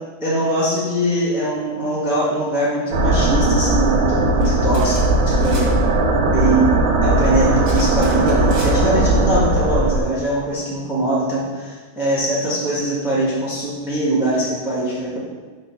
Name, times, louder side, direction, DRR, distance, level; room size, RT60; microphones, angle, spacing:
voice 1, 0.2-4.9 5.2-5.8 6.3-6.7 7.0-15.2, right 1 dB, ahead, -7 dB, 1.0 m, -22 dB
sound 1, 2.9-10.0, right 2 dB, 85° right, 1.7 m, -18 dB
sound 2, 4.4-4.5 4.7-5.0 5.3-5.7 7.6-8.7, right 2 dB, 65° right, 2.9 m, -36 dB
6.1 x 3.9 x 5.8 m, 1.4 s
omnidirectional pair, 2.3 m